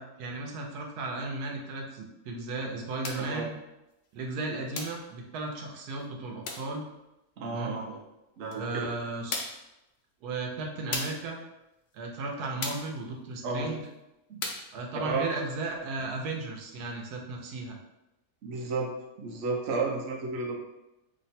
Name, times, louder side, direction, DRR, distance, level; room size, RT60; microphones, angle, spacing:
voice 1, 0.0-3.6 4.1-6.9 7.5-7.7 8.5-9.5 10.2-11.4 11.9-13.8 14.7-17.8, right 3 dB, 90° right, 1 dB, 1.2 m, -35 dB
sound 1, 3.0-3.3 4.7-5.1 6.4-6.7 8.5-8.6 9.3-9.7 10.9-11.3 12.6-12.9 14.4-14.7, left 3 dB, 75° left, 0.6 m, -35 dB
voice 2, 3.1-3.5 7.4-8.0 8.4-8.9 13.4-13.7 14.3-14.4 15.0-15.2 18.4-18.9 19.2-20.6, right 4 dB, 60° right, 0 dB, 0.7 m, -32 dB
3.0 x 2.1 x 4.1 m, 0.93 s
omnidirectional pair, 1.6 m